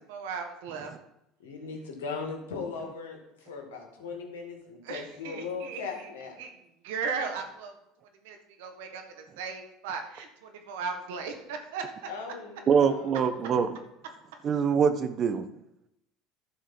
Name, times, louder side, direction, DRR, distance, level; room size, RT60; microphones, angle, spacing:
voice 1, 0.1-0.9 4.8-6.1 6.4-6.5 6.8-7.7 8.2-11.8, right 5 dB, 80° right, 5 dB, 1.6 m, -36 dB
voice 2, 1.4-6.3 12.1-13.7, left 5 dB, 90° left, 2 dB, 2.1 m, -39 dB
voice 3, 12.7-13.7 14.4-15.4, right 6 dB, 45° right, 10 dB, 1.1 m, -24 dB
11.5 x 4.7 x 5.9 m, 0.83 s
hypercardioid pair, 85°, 0 cm